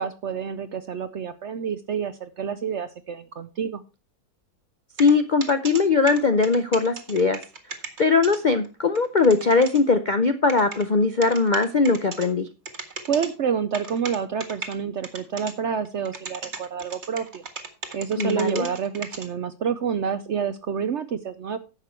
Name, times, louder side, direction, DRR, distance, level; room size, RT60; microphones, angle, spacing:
voice 1, 0.0-3.8 13.1-17.4 17.9-21.6, right 7 dB, 60° right, 12 dB, 0.7 m, -28 dB
voice 2, 5.0-7.4 8.0-12.5 18.2-18.7, left 4 dB, 55° left, 9 dB, 0.5 m, -20 dB
sound 1, 5.0-5.1 5.4-5.8 6.1-8.4 8.6-8.7 8.9-9.8 10.5-10.8 11.2-12.3 12.6-13.3 13.7-14.7 15.0-15.5 15.8-19.3, right 4 dB, 45° right, 1.8 m, -35 dB
11.0 x 7.5 x 4.4 m, 0.31 s
omnidirectional pair, 1.8 m